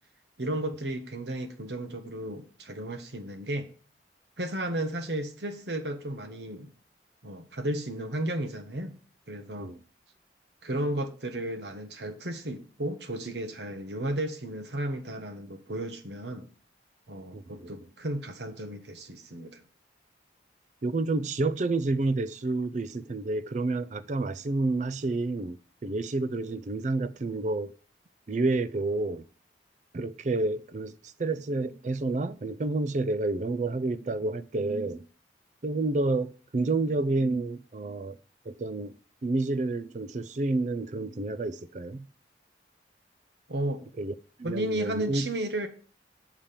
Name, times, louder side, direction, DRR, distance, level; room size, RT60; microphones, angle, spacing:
voice 1, 0.4-3.7 4.4-6.7 7.2-8.9 9.3-9.7 10.6-16.5 17.1-19.6 43.5-43.8 44.4-45.7, right 1 dB, 70° right, 1.2 m, -33 dB
voice 2, 20.8-27.7 28.3-29.2 29.9-35.1 35.6-38.2 38.5-38.9 39.2-42.1 44.0-44.1 44.4-45.3, right 2 dB, 40° right, 0.4 m, -29 dB
7.2 x 5.1 x 5.7 m
head